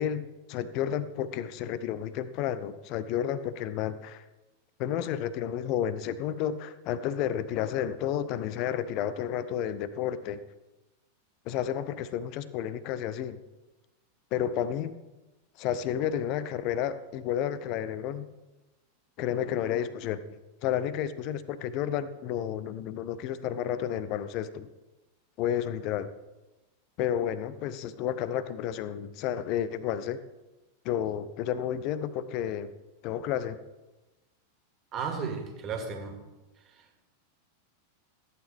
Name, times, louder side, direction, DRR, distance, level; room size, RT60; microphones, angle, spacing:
voice 1, 0.0-4.2 4.8-10.4 11.5-13.4 14.3-15.0 15.6-18.3 19.2-20.2 20.6-24.7 25.4-26.1 27.0-30.2 30.8-32.7 33.0-33.6, left 10 dB, 40° left, 14 dB, 0.6 m, -31 dB
voice 2, 34.9-36.2 36.6-37.0, right 5 dB, 30° right, 3 dB, 2.1 m, -35 dB
14.5 x 9.2 x 3.6 m, 1.1 s
figure-of-eight pair, 90°, 0 cm